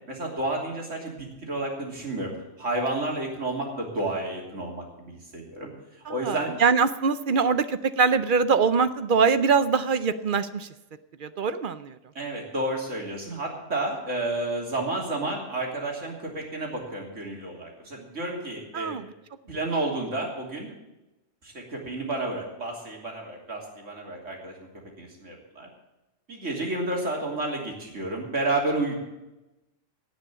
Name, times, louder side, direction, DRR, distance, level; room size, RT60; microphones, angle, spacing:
voice 1, 0.1-5.7 6.1-6.6 12.2-19.0 19.5-20.7 21.4-24.7 25.0-25.7 26.3-28.9, right 2 dB, 80° right, -1 dB, 3.5 m, -31 dB
voice 2, 6.1-10.7 11.2-12.0 18.7-19.1, right 5 dB, 55° right, 13 dB, 0.7 m, -23 dB
17.5 x 6.2 x 8.3 m, 0.99 s
omnidirectional pair, 1.3 m